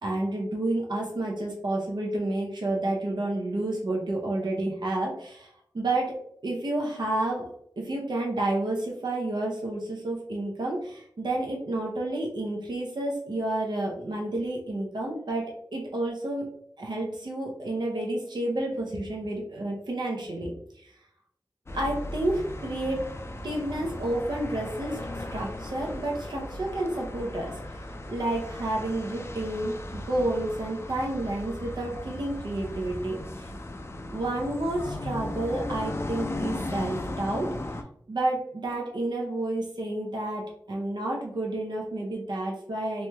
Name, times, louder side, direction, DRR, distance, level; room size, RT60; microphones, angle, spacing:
voice 1, 0.0-6.2 6.4-7.5 7.8-16.5 16.8-20.9 21.7-23.0 23.4-27.8 28.1-33.5 34.1-43.1, right 1 dB, 75° right, -1 dB, 0.6 m, -30 dB
sound 1, 21.7-37.8, left 1 dB, 35° left, 0.4 m, -37 dB
3.0 x 3.0 x 2.2 m, 0.69 s
wide cardioid pair, 55°, 8 cm